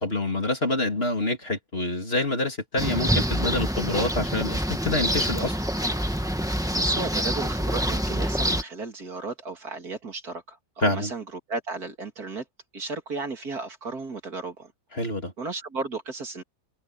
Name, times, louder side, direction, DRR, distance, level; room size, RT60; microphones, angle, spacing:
voice 1, 0.0-5.6 10.8-11.1 14.9-15.3, left 2 dB, 35° left, 3.6 m, -27 dB
sound 1, 2.8-8.6, equal, ahead, 1.6 m, -26 dB
voice 2, 6.7-12.4 12.7-14.7 15.4-16.4, right 3 dB, 60° right, 3.2 m, -34 dB
omnidirectional pair, 1.8 m